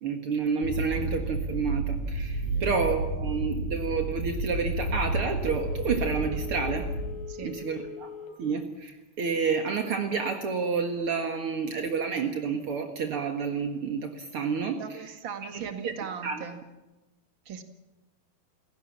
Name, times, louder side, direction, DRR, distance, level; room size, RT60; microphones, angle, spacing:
voice 1, 0.0-6.9 7.4-8.1 8.4-15.0 15.5-15.9 16.2-16.4, right 5 dB, 65° right, 5 dB, 1.4 m, -30 dB
sound 1, 0.6-7.1, right 1 dB, 40° left, 4.8 m, -31 dB
voice 2, 2.5-2.9 7.3-7.6 14.8-16.7 17.4-17.6, right 7 dB, 45° right, 7 dB, 1.6 m, -39 dB
Telephone, 5.4-8.5 8.9-9.0, left 6 dB, 60° left, 5.5 m, -42 dB
29.0 x 17.0 x 7.3 m, 1.1 s
omnidirectional pair, 5.0 m